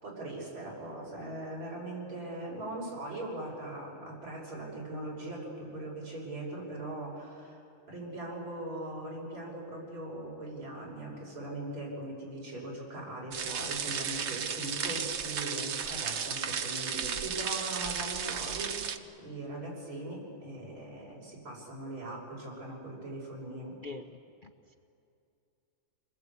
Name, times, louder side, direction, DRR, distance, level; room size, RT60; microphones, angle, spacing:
voice 1, 0.0-7.6 7.9-18.9 19.2-23.7, right 1 dB, 80° right, -3 dB, 6.1 m, -40 dB
sound 1, 13.3-19.0, right 7 dB, 60° right, 0.7 m, -34 dB
voice 2, 23.8-24.7, left 3 dB, 85° left, 5 dB, 0.4 m, -45 dB
27.0 x 20.0 x 8.3 m, 2.6 s
omnidirectional pair, 2.2 m